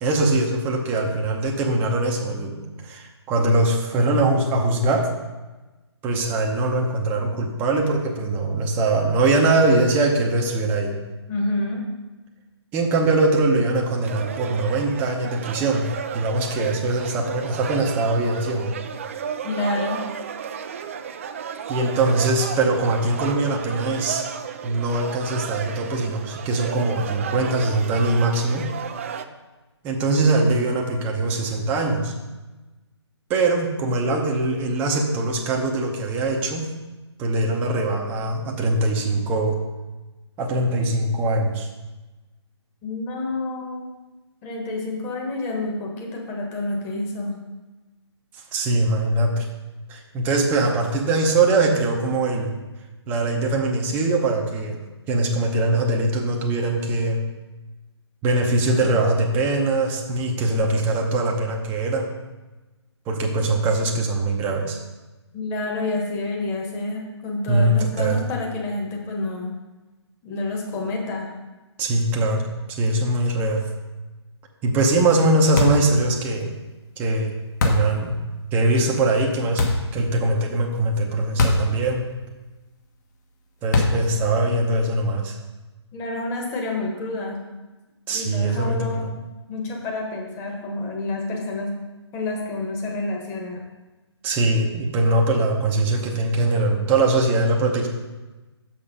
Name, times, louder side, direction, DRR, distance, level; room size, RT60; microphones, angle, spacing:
voice 1, 0.0-5.1 6.0-11.0 12.7-15.9 16.1-18.7 21.7-24.2 24.6-28.6 29.8-32.1 33.3-36.6 37.2-39.6 40.4-41.7 48.5-49.5 49.9-52.5 53.1-54.8 55.1-57.2 58.2-62.1 63.1-64.8 67.5-68.2 71.8-73.7 74.6-76.5 77.0-77.3 77.6-78.1 78.5-79.6 79.9-82.0 83.6-85.4 88.1-89.1 94.2-97.9, right 2 dB, 10° right, 0 dB, 0.8 m, -22 dB
voice 2, 11.3-11.8 19.4-20.0 42.8-43.8 44.4-47.3 65.3-69.5 70.2-71.3 85.9-87.4 88.1-89.0 89.5-91.7 92.1-93.6, left 2 dB, 15° left, 0 dB, 1.4 m, -28 dB
sound 1, 14.0-29.3, right 7 dB, 30° right, 0.4 m, -33 dB
sound 2, 75.6-75.9 77.6-78.0 79.6-79.9 81.4-81.7 82.0-82.1 83.7-84.1, left 2 dB, 40° left, 1.2 m, -21 dB
6.8 x 5.8 x 5.2 m, 1.1 s
figure-of-eight pair, 145°, 15 cm